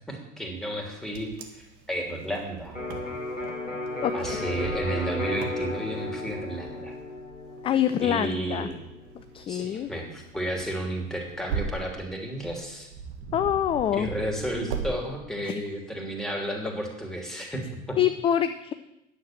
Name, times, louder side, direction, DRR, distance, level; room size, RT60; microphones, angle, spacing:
voice 1, 0.1-2.8 4.1-7.0 8.0-8.8 9.5-12.9 13.9-18.0, right 1 dB, ahead, 0 dB, 2.9 m, -32 dB
Wind, 0.7-14.9, right 6 dB, 55° right, 1.6 m, -40 dB
Electric guitar, 2.7-10.5, left 2 dB, 90° left, 1.2 m, -35 dB
voice 2, 7.6-8.7 9.3-9.9 13.3-14.1 15.4-15.6 18.0-18.7, left 10 dB, 15° left, 10 dB, 0.3 m, -25 dB
9.8 x 7.3 x 7.3 m, 0.90 s
figure-of-eight pair, 65°, 37 cm